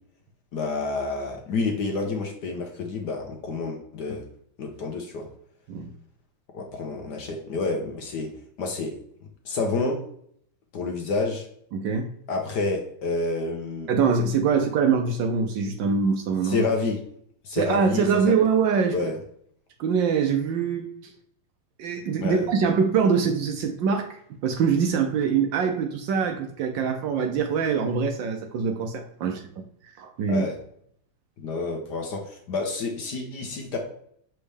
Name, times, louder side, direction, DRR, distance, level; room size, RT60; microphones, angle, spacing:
voice 1, 0.5-4.2 4.6-5.3 6.5-8.3 8.6-8.9 9.4-10.0 10.7-11.5 12.3-13.9 16.4-17.0 17.4-18.3 18.9-19.2 22.2-22.5 29.2-29.3 30.3-30.5 31.4-33.8, left 3 dB, 60° left, 2 dB, 1.2 m, -29 dB
voice 2, 11.7-12.1 13.9-16.6 17.5-19.0 19.8-20.9 21.8-29.6 30.0-30.4, right 6 dB, 70° right, 5 dB, 1.2 m, -24 dB
6.8 x 4.2 x 3.3 m, 0.68 s
omnidirectional pair, 2.4 m